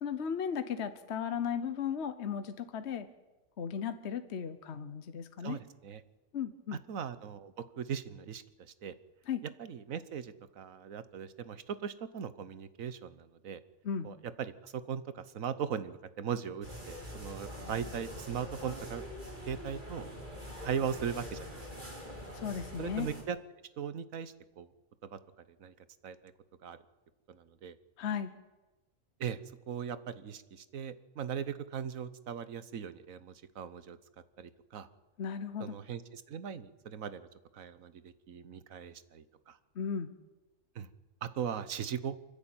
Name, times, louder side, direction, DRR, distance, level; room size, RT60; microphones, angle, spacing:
voice 1, 0.0-3.1 3.6-5.6 6.3-6.8 9.3-9.4 13.8-14.1 22.3-23.1 28.0-28.3 35.2-35.8 39.8-40.1, left 7 dB, 60° left, 10 dB, 1.1 m, -36 dB
voice 2, 5.4-6.0 6.9-8.4 8.8-8.9 9.6-13.6 14.0-19.0 19.5-20.1 20.6-21.9 22.8-23.4 23.8-24.7 25.1-25.2 25.6-25.7 26.0-26.3 26.6-26.8 27.3-27.7 29.2-29.4 29.7-34.0 34.4-34.9 35.6-37.3 37.5-39.6 40.7-40.9 41.2-42.1, right 8 dB, 85° right, 13 dB, 1.4 m, -39 dB
sound 1, 16.6-23.2, equal, 35° right, 4.6 m, -44 dB
29.0 x 10.5 x 8.9 m, 1.1 s
omnidirectional pair, 1.4 m